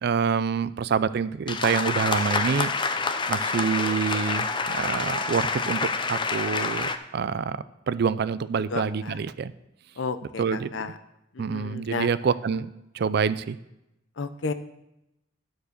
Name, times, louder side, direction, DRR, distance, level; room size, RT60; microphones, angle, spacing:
voice 1, 0.0-2.7 3.3-5.8 6.1-9.5 10.4-10.7 11.4-13.6, right 6 dB, 60° right, 16 dB, 0.4 m, -27 dB
sound 1, 1.5-7.0, left 4 dB, 25° left, 0.5 m, -27 dB
voice 2, 8.7-9.2 10.0-11.0 11.3-12.1 14.2-14.5, left 4 dB, 80° left, 11 dB, 0.6 m, -32 dB
11.5 x 4.9 x 6.6 m, 0.89 s
head